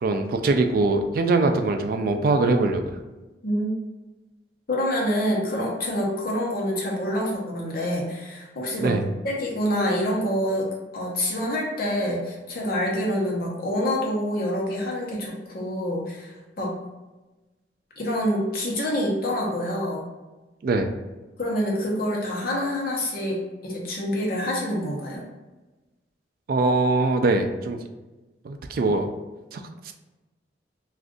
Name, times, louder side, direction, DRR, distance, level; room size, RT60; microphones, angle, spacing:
voice 1, 0.0-2.8 8.8-9.0 20.6-20.9 26.5-27.8 28.4-29.1 29.5-29.9, right 3 dB, 55° right, 6 dB, 0.3 m, -22 dB
voice 2, 4.7-9.0 9.2-16.8 18.0-20.0 21.4-25.2, equal, 55° left, -2 dB, 0.8 m, -26 dB
2.5 x 2.4 x 3.6 m, 1.1 s
head